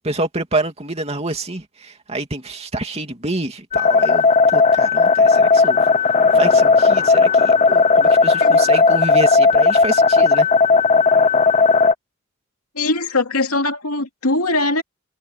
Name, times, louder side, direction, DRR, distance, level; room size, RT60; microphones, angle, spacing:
voice 1, 0.0-5.8 6.3-10.5, right 2 dB, 30° right, 2.7 m, -27 dB
sound 1, 3.7-11.9, left 4 dB, 30° left, 0.6 m, -14 dB
voice 2, 12.7-14.8, left 2 dB, 85° left, 2.6 m, -21 dB
head